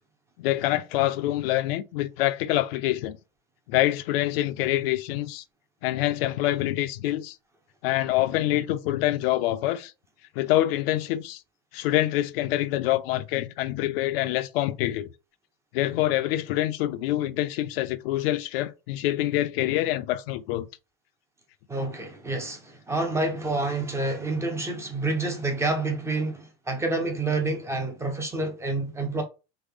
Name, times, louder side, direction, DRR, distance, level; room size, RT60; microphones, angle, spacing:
voice 1, 0.4-3.2 3.7-5.4 5.8-7.4 7.8-9.9 10.4-11.4 11.7-15.1 15.7-20.7, left 15 dB, 75° left, 0.5 m, -26 dB
voice 2, 21.7-29.2, right 2 dB, 10° right, 0.4 m, -28 dB
3.2 x 2.0 x 3.4 m
supercardioid pair, 155°, 30 cm